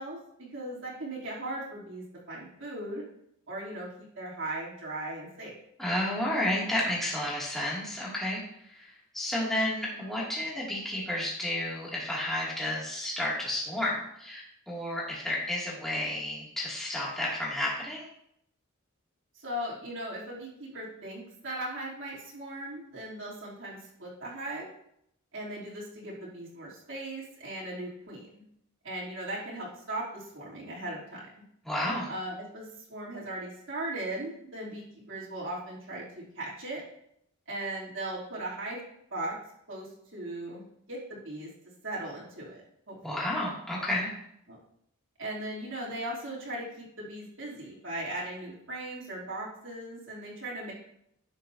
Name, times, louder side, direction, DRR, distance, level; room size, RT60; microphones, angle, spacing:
voice 1, 0.0-3.0 3.5-3.9 4.1-5.5 19.3-24.7 25.3-28.3 28.8-31.3 32.1-36.8 37.5-38.8 39.1-39.4 39.7-41.5 41.8-42.6 42.9-43.2 44.5-44.6 45.2-50.7, right 1 dB, 60° right, -7 dB, 3.3 m, -38 dB
voice 2, 5.8-18.1 31.6-32.1 43.0-44.1, left 1 dB, ahead, -7 dB, 2.6 m, -31 dB
12.0 x 9.5 x 2.8 m, 0.73 s
head